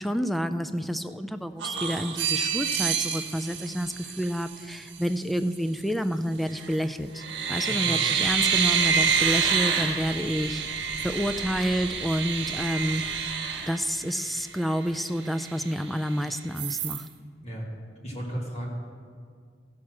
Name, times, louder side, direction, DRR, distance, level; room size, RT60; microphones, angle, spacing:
voice 1, 0.0-7.2 7.5-13.2 13.7-17.1, equal, ahead, 9 dB, 0.3 m, -29 dB
sound 1, 1.6-4.6 6.4-6.8 7.2-14.4 14.9-15.0 15.2-16.1 16.6-17.0, right 6 dB, 90° right, 1.1 m, -28 dB
sound 2, 8.1-13.4, equal, 20° right, 0.9 m, -47 dB
voice 2, 18.0-18.7, equal, 35° left, -3 dB, 2.2 m, -34 dB
15.0 x 6.3 x 5.9 m, 2.1 s
head